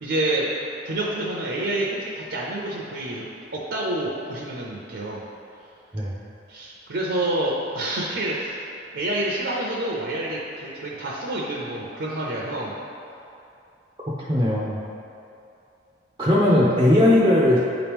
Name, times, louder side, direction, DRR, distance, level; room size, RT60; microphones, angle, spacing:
voice 1, 0.0-0.5 0.8-3.3 3.5-5.2 6.5-8.7 8.9-12.7, right 1 dB, 65° right, -4 dB, 0.6 m, -28 dB
voice 2, 14.1-14.8 16.2-17.6, left 1 dB, 20° right, -5 dB, 0.5 m, -18 dB
8.9 x 3.0 x 3.5 m, 2.7 s
head